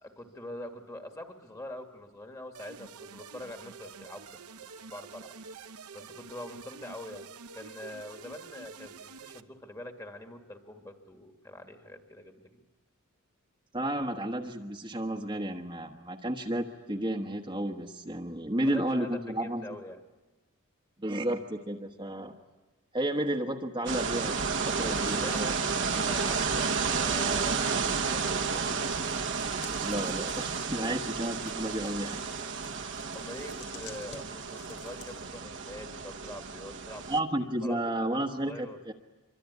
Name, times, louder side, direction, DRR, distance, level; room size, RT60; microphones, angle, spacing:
voice 1, 0.0-4.4 4.9-5.3 5.9-7.2 7.5-12.6 18.7-20.0 24.9-28.7 33.1-37.0 37.6-37.8 38.1-38.8, left 1 dB, 15° left, 5 dB, 1.9 m, -44 dB
sound 1, 2.5-9.4, right 5 dB, 80° right, 0.9 m, -48 dB
voice 2, 13.7-19.8 21.0-22.3 22.9-24.4 24.7-25.5 29.8-32.2 37.1-38.9, right 1 dB, 20° right, 1 dB, 1.3 m, -32 dB
sound 2, 23.9-37.2, right 5 dB, 55° right, 1.2 m, -32 dB
sound 3, 25.1-35.4, left 7 dB, 80° left, 3.6 m, -52 dB
26.0 x 24.0 x 9.6 m, 1.2 s
head